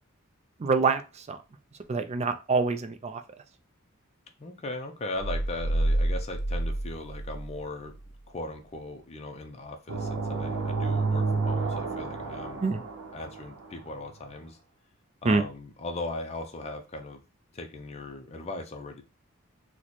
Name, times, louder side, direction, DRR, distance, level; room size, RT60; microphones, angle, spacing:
voice 1, 0.6-1.4 1.9-3.2 12.6-12.8 15.2-15.4, right 4 dB, 30° right, 8 dB, 0.4 m, -26 dB
voice 2, 4.4-8.0 8.3-12.7 13.1-14.6 15.2-17.2 17.5-19.0, left 2 dB, 30° left, 4 dB, 0.5 m, -38 dB
sound 1, 5.2-8.2, right 1 dB, 85° left, 0.6 m, -29 dB
sound 2, 9.9-13.7, right 4 dB, 90° right, 0.7 m, -30 dB
3.0 x 2.1 x 4.0 m, 0.30 s
head